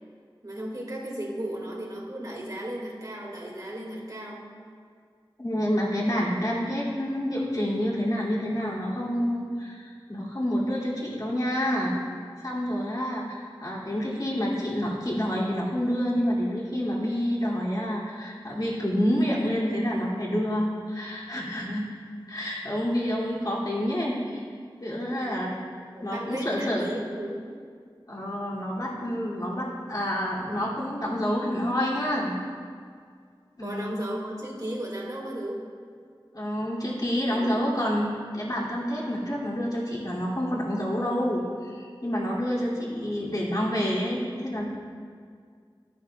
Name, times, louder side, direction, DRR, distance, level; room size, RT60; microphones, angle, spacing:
voice 1, 0.4-4.5 25.1-25.4 25.9-27.6 33.6-35.6 37.3-37.6, right 1 dB, 45° right, -3 dB, 2.0 m, -35 dB
voice 2, 5.4-12.0 12.4-21.8 22.3-24.4 24.8-25.6 26.0-26.8 28.1-32.4 33.6-34.0 36.3-44.6, equal, 50° left, -6 dB, 2.5 m, -28 dB
11.5 x 10.0 x 2.3 m, 2.1 s
wide cardioid pair, 45°, 9 cm